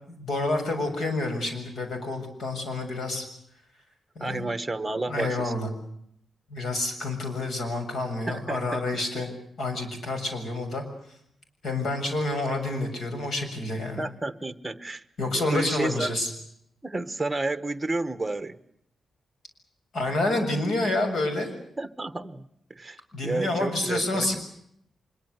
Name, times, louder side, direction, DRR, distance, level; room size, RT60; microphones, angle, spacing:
voice 1, 0.1-3.3 4.2-4.5 5.1-5.7 6.5-9.3 9.6-10.8 11.6-14.0 15.2-16.3 19.9-21.5 23.1-24.4, left 2 dB, 60° left, 6 dB, 7.0 m, -28 dB
voice 2, 4.2-5.5 8.3-9.2 14.0-15.0 15.3-16.1 16.8-18.6 21.8-22.5 22.8-24.4, right 2 dB, 10° right, 12 dB, 1.2 m, -31 dB
25.0 x 23.0 x 8.1 m, 0.72 s
wide cardioid pair, 155°, 0 cm